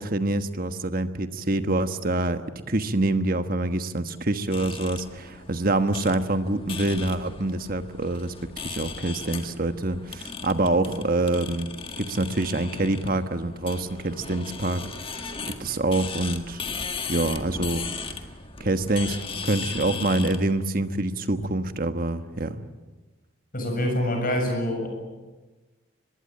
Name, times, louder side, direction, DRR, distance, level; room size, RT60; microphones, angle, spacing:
voice 1, 0.0-2.4 2.7-8.3 8.6-11.7 12.0-15.3 15.6-16.6 17.1-17.8 18.6-22.6, right 2 dB, 45° right, 9 dB, 1.3 m, -26 dB
sound 1, 4.5-20.5, left 5 dB, 25° left, 1.7 m, -37 dB
voice 2, 23.5-24.9, left 1 dB, 45° left, 3 dB, 7.2 m, -25 dB
24.5 x 21.5 x 8.9 m, 1.2 s
head